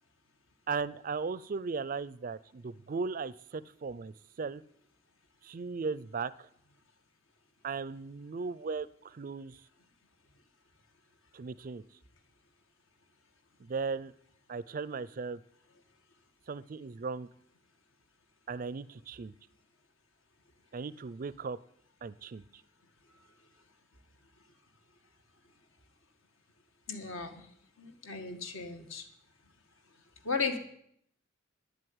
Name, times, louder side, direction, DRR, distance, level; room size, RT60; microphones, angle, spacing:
voice 1, 0.7-4.6 5.4-6.5 7.6-9.6 11.3-11.8 13.6-14.1 14.5-15.4 16.5-17.3 18.5-19.3 20.7-21.6 22.0-22.4, right 4 dB, 40° right, 19 dB, 0.4 m, -37 dB
voice 2, 26.9-27.4 27.8-29.0 30.2-30.6, left 4 dB, 75° left, 7 dB, 1.7 m, -35 dB
10.5 x 7.8 x 9.6 m, 0.68 s
head